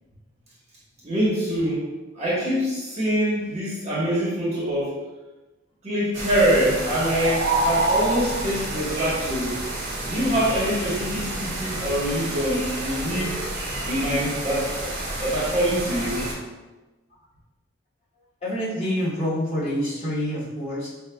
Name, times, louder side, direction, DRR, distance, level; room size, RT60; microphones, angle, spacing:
voice 1, 1.0-1.8 2.1-5.0 5.8-9.6 10.0-13.3 13.9-16.3, equal, 35° right, -8 dB, 1.1 m, -24 dB
sound 1, 6.1-16.3, right 2 dB, 60° right, 1.1 m, -28 dB
voice 2, 18.4-20.9, equal, 30° left, -11 dB, 1.4 m, -27 dB
5.0 x 2.4 x 2.2 m, 1.1 s
head